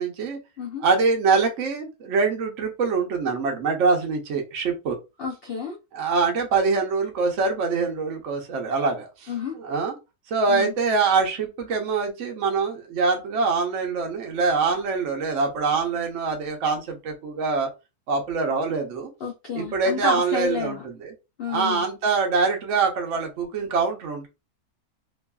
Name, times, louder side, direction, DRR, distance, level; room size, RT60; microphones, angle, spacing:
voice 1, 0.0-0.4 0.8-5.0 5.9-10.0 10.3-17.7 18.1-19.1 19.5-21.1 21.5-24.3, right 4 dB, 60° right, 1.0 m, -24 dB
voice 2, 5.2-5.8 9.3-9.5 10.5-10.7 19.2-20.8 21.4-21.8, left 5 dB, 85° left, 0.5 m, -30 dB
3.0 x 2.5 x 2.2 m
omnidirectional pair, 1.7 m